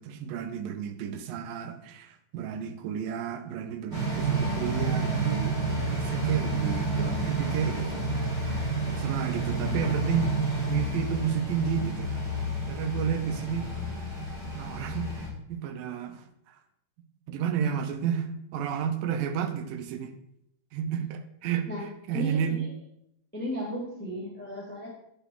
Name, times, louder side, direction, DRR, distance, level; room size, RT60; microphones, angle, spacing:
voice 1, 0.0-8.4 8.9-10.3 10.6-12.2 12.7-13.7 14.5-16.2 17.3-20.1 20.7-21.7 22.1-22.6, right 8 dB, 85° right, 9 dB, 2.5 m, -31 dB
sound 1, 3.9-15.3, right 2 dB, 30° right, 2.8 m, -30 dB
voice 2, 22.1-22.6 23.3-24.9, equal, 5° left, -3 dB, 0.7 m, -35 dB
9.6 x 6.0 x 3.7 m, 0.75 s
omnidirectional pair, 4.0 m